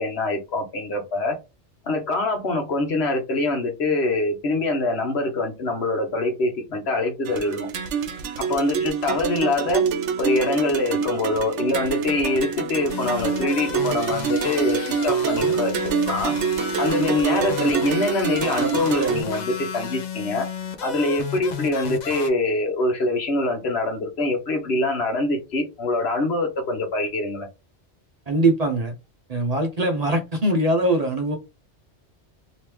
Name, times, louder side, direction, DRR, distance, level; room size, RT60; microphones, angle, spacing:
voice 1, 0.0-1.4 1.8-7.7 8.4-9.9 10.2-15.7 16.1-16.3 16.8-20.5 20.8-27.5, left 2 dB, 70° left, 1.2 m, -24 dB
sound 1, 7.3-19.2, right 6 dB, 85° right, 0.9 m, -26 dB
sound 2, 12.9-22.3, left 6 dB, 50° left, 0.6 m, -33 dB
voice 2, 28.3-28.9 29.3-31.4, right 1 dB, 40° right, 0.7 m, -22 dB
3.0 x 2.9 x 3.4 m
omnidirectional pair, 1.2 m